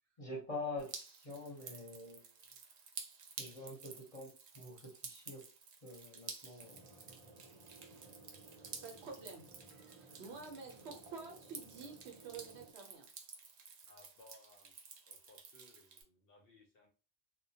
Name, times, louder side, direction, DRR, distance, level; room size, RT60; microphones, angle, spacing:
voice 1, 0.2-0.9 1.2-2.2 3.4-5.4 5.8-6.9, left 2 dB, 30° left, -3 dB, 0.8 m, -45 dB
Drip, 0.8-16.0, right 5 dB, 85° right, 0.3 m, -52 dB
sound 1, 6.6-12.7, right 2 dB, 35° right, 0.7 m, -59 dB
voice 2, 8.8-13.1, right 4 dB, 65° right, 3 dB, 0.8 m, -50 dB
voice 3, 13.9-14.7 15.1-16.9, left 2 dB, 65° left, 1 dB, 0.7 m, -63 dB
2.1 x 2.1 x 2.7 m, 0.36 s
omnidirectional pair, 1.3 m